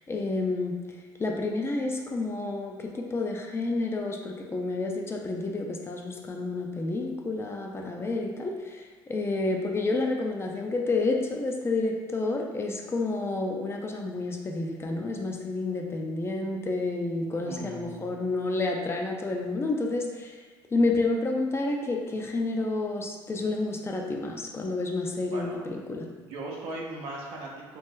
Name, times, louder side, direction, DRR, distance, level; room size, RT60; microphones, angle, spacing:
voice 1, 0.1-0.8 1.2-20.4 20.7-26.1, left 2 dB, 25° left, 1 dB, 0.4 m, -29 dB
voice 2, 17.4-18.3 25.3-25.6 26.1-27.8, right 2 dB, 80° right, -2 dB, 0.7 m, -39 dB
2.8 x 2.0 x 3.6 m, 1.4 s
supercardioid pair, 80°, 10 cm